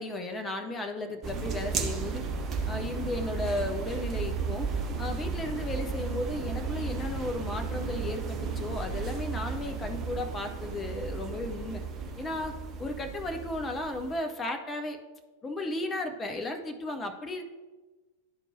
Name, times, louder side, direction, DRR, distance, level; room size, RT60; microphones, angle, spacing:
voice 1, 0.0-2.3 2.7-4.7 5.0-11.8 12.2-12.5 12.8-15.0 15.4-17.4, left 2 dB, 20° left, 5 dB, 0.8 m, -34 dB
sound 1, 1.2-14.2, right 4 dB, 30° right, 0.8 m, -34 dB
12.0 x 4.5 x 2.7 m, 1.3 s
figure-of-eight pair, 90°, 0 cm